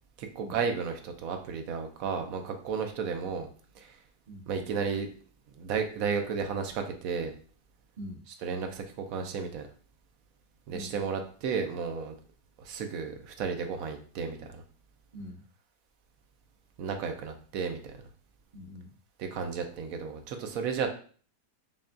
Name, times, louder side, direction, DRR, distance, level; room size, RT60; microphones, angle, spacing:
voice 1, 0.2-3.5 3.8-4.0 4.5-5.1 5.6-7.3 8.4-9.7 10.7-12.1 12.6-14.6 16.8-18.0 19.2-20.9, right 6 dB, 70° right, 5 dB, 0.9 m, -33 dB
voice 2, 15.1-15.4 18.5-18.9, equal, 55° right, -2 dB, 0.5 m, -43 dB
5.5 x 2.3 x 2.5 m, 0.43 s
omnidirectional pair, 1.7 m